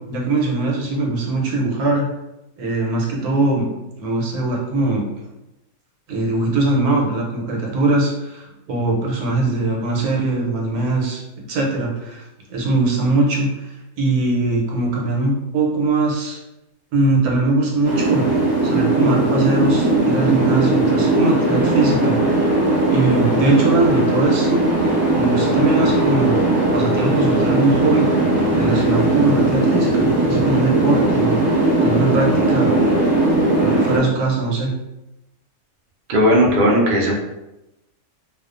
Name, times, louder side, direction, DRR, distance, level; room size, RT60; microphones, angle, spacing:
voice 1, 0.1-2.1 2.6-3.7 4.0-5.0 6.1-12.2 12.5-13.7 14.0-16.4 16.9-18.2 18.6-22.2 22.9-24.6 25.1-28.1 28.5-31.4 31.8-32.7 33.6-34.7, right 2 dB, 85° right, -1 dB, 1.2 m, -21 dB
sound 1, 17.8-34.0, right 2 dB, 10° right, 0.9 m, -18 dB
voice 2, 36.1-37.2, equal, 60° right, -2 dB, 0.5 m, -16 dB
2.4 x 2.3 x 2.4 m, 0.93 s
omnidirectional pair, 1.5 m